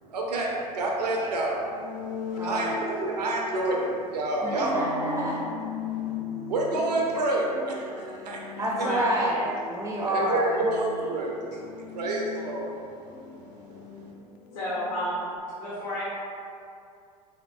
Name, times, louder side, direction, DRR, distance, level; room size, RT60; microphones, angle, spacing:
voice 1, 0.0-5.0 5.9-8.4 8.8-8.9 10.0-11.4 11.8-14.1, right 2 dB, 80° right, -2 dB, 0.7 m, -29 dB
sound 1, 1.7-15.4, left 6 dB, 40° left, 0.4 m, -39 dB
voice 2, 2.4-2.7 4.4-5.4 8.6-10.7, right 1 dB, 15° right, -3 dB, 0.5 m, -28 dB
voice 3, 14.5-16.2, equal, 70° left, -10 dB, 1.0 m, -32 dB
3.6 x 3.3 x 2.3 m, 2.5 s
hypercardioid pair, 80°, 20 cm